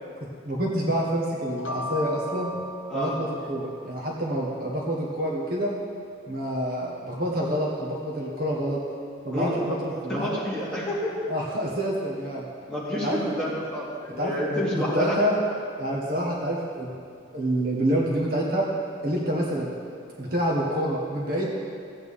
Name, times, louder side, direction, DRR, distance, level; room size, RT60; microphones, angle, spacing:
voice 1, 0.4-2.5 2.9-5.7 6.3-8.8 9.2-10.3 11.3-12.5 13.0-13.3 14.2-15.3 15.8-16.9 17.3-18.7 19.0-19.7 20.2-21.5, equal, 45° right, -3 dB, 1.3 m, -27 dB
sound 1, 1.4-4.2, left 1 dB, 80° left, 1.0 m, -37 dB
voice 2, 9.3-11.1 12.7-15.1, left 1 dB, 5° left, -10 dB, 2.7 m, -29 dB
16.0 x 8.6 x 3.6 m, 2.4 s
head